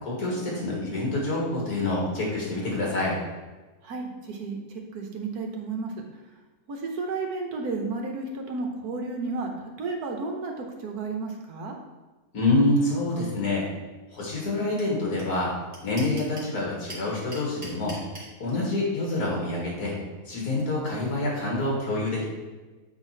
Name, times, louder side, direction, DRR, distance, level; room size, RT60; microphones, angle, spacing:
voice 1, 0.0-3.2 12.3-13.7 14.1-15.5 15.8-18.0 18.4-20.0 20.3-22.2, left 2 dB, 70° left, -3 dB, 2.3 m, -26 dB
voice 2, 3.8-6.2 6.7-11.7, right 3 dB, 70° right, 2 dB, 1.5 m, -32 dB
sound 1, 14.8-14.9 15.2-15.3 15.5-16.5 16.9-18.3, right 1 dB, 25° right, 1.8 m, -40 dB
7.9 x 4.2 x 4.4 m, 1.2 s
omnidirectional pair, 1.7 m